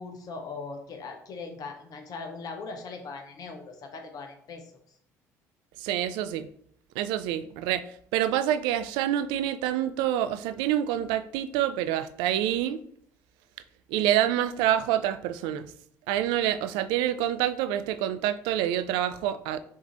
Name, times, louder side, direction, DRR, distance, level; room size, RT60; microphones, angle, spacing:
voice 1, 0.0-4.7, left 4 dB, 50° left, 0.7 m, -40 dB
voice 2, 5.8-6.5 7.0-7.8 8.1-12.8 13.9-15.7 16.1-19.6, right 11 dB, 70° right, 0.3 m, -27 dB
4.8 x 2.6 x 3.8 m
hypercardioid pair, 55°, 8 cm